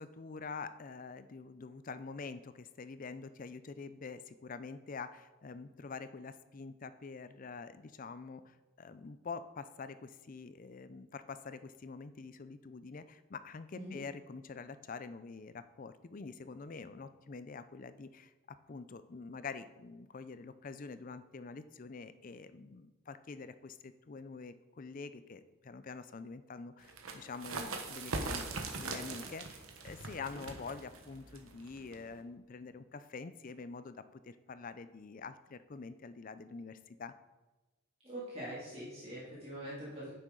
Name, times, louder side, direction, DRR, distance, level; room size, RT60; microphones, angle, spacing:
voice 1, 0.0-18.3 18.7-37.1, left 4 dB, 40° left, 12 dB, 0.4 m, -46 dB
sound 1, 26.8-32.2, right 3 dB, 75° right, 1.1 m, -41 dB
voice 2, 38.0-40.1, right 1 dB, 30° right, -9 dB, 2.5 m, -43 dB
9.7 x 9.1 x 3.9 m, 1.2 s
head